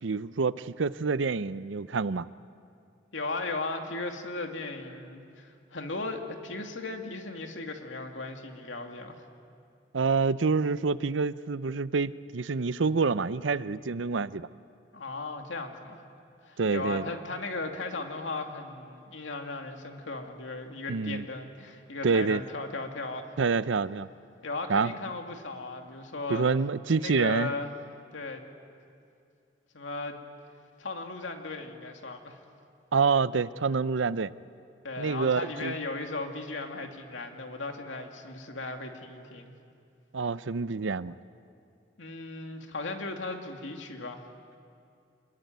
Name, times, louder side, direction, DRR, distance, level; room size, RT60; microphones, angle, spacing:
voice 1, 0.0-2.3 9.9-14.5 16.6-17.0 20.9-21.3 22.0-22.4 23.4-24.1 24.7-24.9 26.3-27.5 32.9-34.3 35.0-35.7 40.1-41.1, right 4 dB, 80° right, 16 dB, 0.6 m, -27 dB
voice 2, 3.1-9.2 14.9-16.0 16.4-23.3 24.4-26.5 27.0-27.8 28.1-28.4 29.7-30.2 30.8-32.4 34.8-39.5 42.0-44.3, left 3 dB, 90° left, 4 dB, 2.5 m, -36 dB
26.5 x 22.0 x 9.4 m, 2.4 s
head